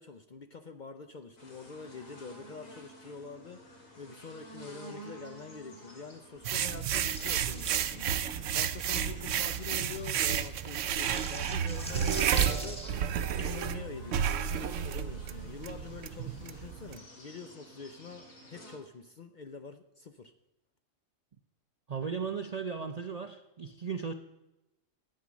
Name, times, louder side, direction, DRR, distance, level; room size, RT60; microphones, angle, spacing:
voice 1, 0.0-3.6 4.0-8.2 8.5-13.0 13.4-20.3, left 5 dB, 50° left, 8 dB, 0.6 m, -46 dB
sound 1, 1.4-18.8, equal, 85° left, 2.7 m, -52 dB
sound 2, 6.4-17.0, right 9 dB, 70° right, 0.9 m, -31 dB
sound 3, 6.5-13.4, equal, 5° left, 1.7 m, -43 dB
voice 2, 21.9-24.1, right 6 dB, 50° right, 7 dB, 0.4 m, -36 dB
11.5 x 8.8 x 6.2 m, 0.97 s
omnidirectional pair, 1.4 m